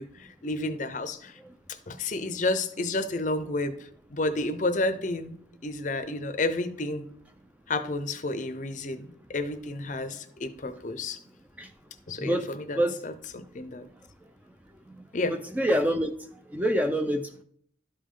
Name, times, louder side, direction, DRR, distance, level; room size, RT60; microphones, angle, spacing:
voice 1, 0.0-1.4 1.7-7.1 7.7-11.2 12.1-13.9 15.1-15.4, left 2 dB, 40° left, 10 dB, 0.6 m, -31 dB
voice 2, 12.2-13.0 15.3-16.1 16.5-17.4, equal, 10° right, 6 dB, 0.4 m, -26 dB
12.0 x 5.2 x 3.7 m, 0.62 s
head